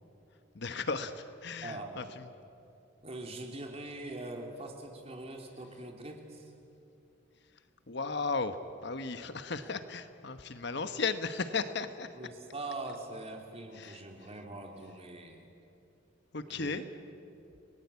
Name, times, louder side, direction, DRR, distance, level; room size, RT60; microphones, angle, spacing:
voice 1, 0.5-2.3 7.9-12.1 13.7-14.0 16.3-16.8, left 4 dB, 60° left, 10 dB, 1.2 m, -35 dB
voice 2, 1.6-2.2 3.0-6.5 9.6-9.8 12.1-15.5 16.5-16.8, right 2 dB, 30° right, 2 dB, 3.0 m, -43 dB
30.0 x 19.5 x 8.4 m, 2.8 s
head